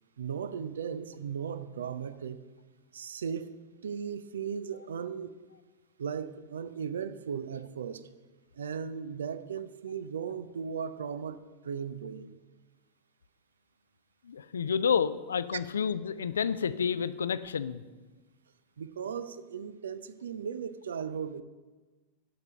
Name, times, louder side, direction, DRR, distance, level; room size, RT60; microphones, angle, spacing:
voice 1, 0.2-2.4 2.9-5.4 6.0-8.0 8.5-12.3 18.8-21.4, right 7 dB, 65° right, 14 dB, 0.5 m, -37 dB
voice 2, 14.2-17.8, left 7 dB, 70° left, 15 dB, 0.4 m, -29 dB
12.0 x 5.9 x 6.7 m, 1.3 s
figure-of-eight pair, 90°, 0 cm